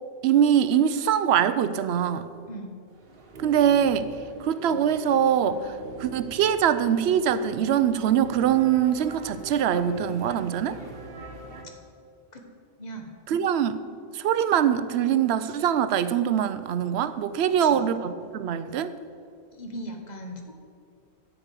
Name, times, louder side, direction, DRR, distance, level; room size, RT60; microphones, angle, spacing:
voice 1, 0.2-2.3 3.4-4.1 4.4-10.8 13.3-13.8 14.1-18.9, right 9 dB, 75° right, 13 dB, 0.8 m, -23 dB
sound 1, 2.9-11.6, right 3 dB, 60° right, 1.4 m, -42 dB
voice 2, 12.8-13.1 17.6-17.8 19.5-20.5, right 1 dB, 40° left, 3 dB, 1.3 m, -38 dB
10.0 x 5.2 x 8.2 m, 2.3 s
omnidirectional pair, 1.1 m